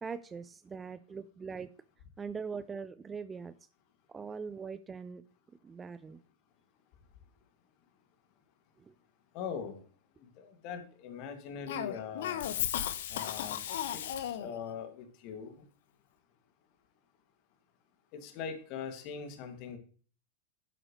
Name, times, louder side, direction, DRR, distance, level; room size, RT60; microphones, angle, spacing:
voice 1, 0.0-1.7 2.2-3.5 4.1-5.2 5.6-6.2 8.8-8.9, right 5 dB, 15° right, 0.5 m, -41 dB
voice 2, 9.3-9.8 10.2-12.5 13.1-15.6 18.1-19.8, left 6 dB, 40° left, 2.3 m, -42 dB
Cough, 11.7-14.6, left 10 dB, 55° left, 1.0 m, -35 dB
12.0 x 8.7 x 3.2 m
figure-of-eight pair, 90°, 0 cm